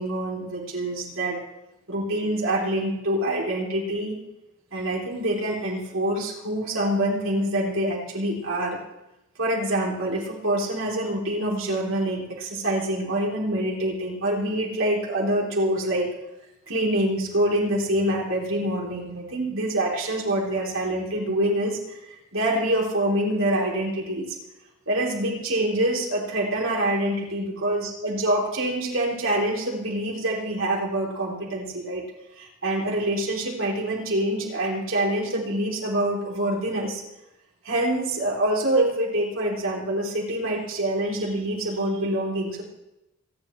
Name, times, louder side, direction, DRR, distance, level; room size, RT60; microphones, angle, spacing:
voice 1, 0.0-1.4 1.9-4.2 4.7-8.8 9.4-16.1 16.7-24.4 24.9-32.0 32.4-37.0 37.6-42.6, right 1 dB, 70° right, -3 dB, 3.6 m, -26 dB
26.5 x 10.5 x 3.3 m, 0.90 s
head